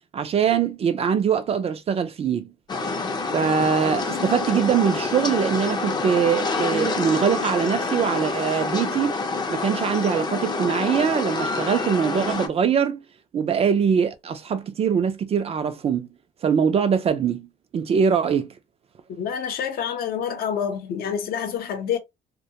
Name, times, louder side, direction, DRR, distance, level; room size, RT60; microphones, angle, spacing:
voice 1, 0.1-2.5 3.3-9.1 9.5-13.0 13.3-16.1 16.4-17.5 17.7-18.5, right 7 dB, 35° right, 0.4 m, -22 dB
sound 1, 2.7-12.5, left 3 dB, 25° left, 0.5 m, -27 dB
voice 2, 19.1-22.0, left 8 dB, 65° left, 0.7 m, -27 dB
2.2 x 2.1 x 2.7 m
cardioid pair, 110°, 17 cm